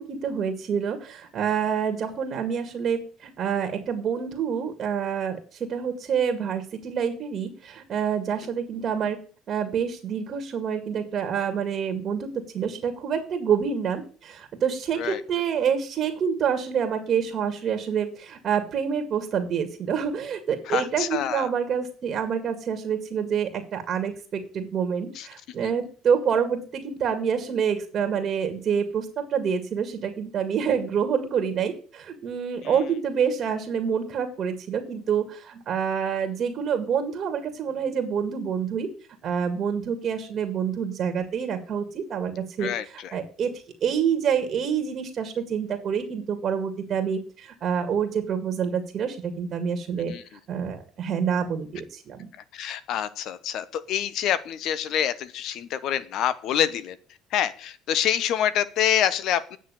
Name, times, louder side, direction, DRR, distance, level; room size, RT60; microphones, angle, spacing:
voice 1, 0.0-9.2 9.5-38.9 39.2-43.5 43.8-50.1 50.5-52.3, right 7 dB, 50° right, 6 dB, 2.1 m, -27 dB
voice 2, 20.7-21.5 25.1-25.3 32.6-32.7 42.6-43.2 50.0-50.2 52.5-57.0 57.3-59.6, left 10 dB, 65° left, 16 dB, 1.1 m, -26 dB
9.3 x 6.3 x 8.5 m, 0.41 s
supercardioid pair, 100°, 0 cm